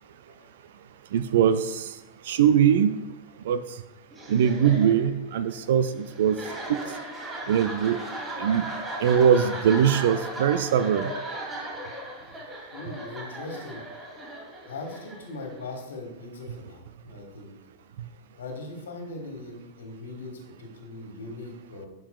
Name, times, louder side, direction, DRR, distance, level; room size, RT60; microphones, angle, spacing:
voice 1, 1.1-1.9 2.3-2.9 3.5-3.6 4.3-6.4 6.7-6.8 7.5-8.0 8.4-8.7 9.0-11.1, right 8 dB, 60° right, 12 dB, 0.3 m, -21 dB
sound 1, 4.1-15.8, right 1 dB, 20° right, 2.5 m, -37 dB
voice 2, 12.7-13.8 14.7-17.5 18.3-21.9, left 2 dB, 65° left, 2 dB, 1.6 m, -39 dB
11.5 x 5.3 x 2.3 m, 0.97 s
figure-of-eight pair, 90°, 0 cm